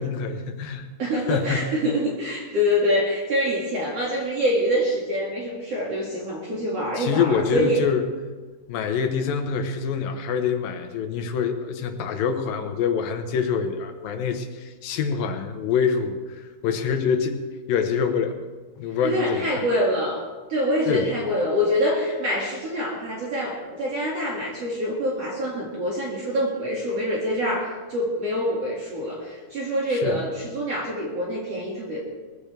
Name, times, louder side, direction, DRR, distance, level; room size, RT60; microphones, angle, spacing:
voice 1, 0.0-0.9 1.3-1.7 7.0-8.1 8.7-17.4 17.7-18.4 18.8-19.7 20.9-21.1 30.0-30.2, left 6 dB, 80° left, 6 dB, 2.9 m, -25 dB
voice 2, 1.0-7.8 19.0-20.2 20.5-32.0, equal, 50° right, -4 dB, 3.1 m, -25 dB
21.0 x 15.0 x 3.4 m, 1.4 s
omnidirectional pair, 4.0 m